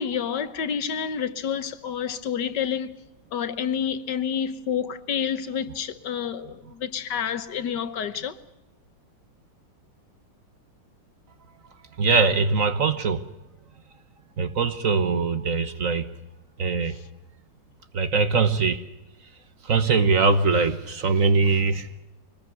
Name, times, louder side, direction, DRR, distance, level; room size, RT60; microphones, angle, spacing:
voice 1, 0.0-3.0 3.3-8.4, left 7 dB, 70° left, 1.7 m, -29 dB
voice 2, 12.0-13.2 14.4-16.1 16.6-17.0 17.9-18.8 19.6-21.9, right 4 dB, 50° right, 1.4 m, -22 dB
23.5 x 20.0 x 7.8 m
omnidirectional pair, 2.0 m